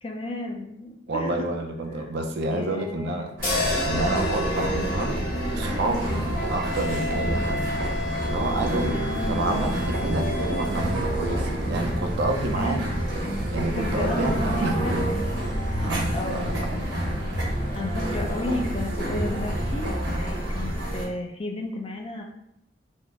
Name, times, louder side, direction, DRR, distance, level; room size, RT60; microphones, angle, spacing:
voice 1, 0.0-1.5 1.9-2.1 2.5-3.3 6.0-6.3 8.9-9.7 12.5-12.9 13.8-15.2 15.7-17.0 17.7-22.2, left 2 dB, 30° left, 1 dB, 0.4 m, -33 dB
voice 2, 1.1-3.3 3.8-5.3 5.6-6.0 6.5-7.9 8.2-9.0 9.3-12.9 13.5-14.7 15.8-16.9, right 2 dB, 60° right, 3 dB, 0.4 m, -29 dB
sound 1, 3.4-7.7, left 3 dB, 50° left, 1.1 m, -32 dB
sound 2, 3.4-21.0, right 1 dB, 75° right, 1.1 m, -28 dB
Wind instrument woodwind instrument, 6.3-10.9, left 2 dB, 65° left, 0.9 m, -34 dB
3.5 x 2.0 x 3.4 m, 0.80 s
head